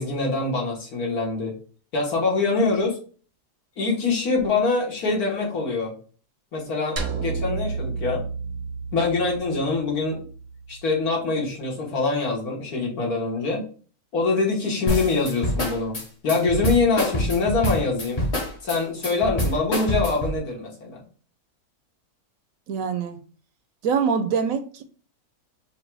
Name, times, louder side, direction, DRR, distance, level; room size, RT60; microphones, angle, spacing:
voice 1, 0.0-1.5 1.9-3.0 3.8-5.9 6.5-8.2 8.9-10.2 10.7-13.7 14.1-18.2 18.6-21.0, left 3 dB, 75° left, -2 dB, 1.9 m, -24 dB
sound 1, 7.0-11.3, right 5 dB, 50° right, 0.6 m, -32 dB
sound 2, 14.9-20.4, left 1 dB, 30° left, 0.8 m, -26 dB
voice 2, 22.7-23.2 23.8-24.8, right 6 dB, 70° right, 9 dB, 0.9 m, -24 dB
4.5 x 2.3 x 4.6 m, 0.41 s
omnidirectional pair, 1.6 m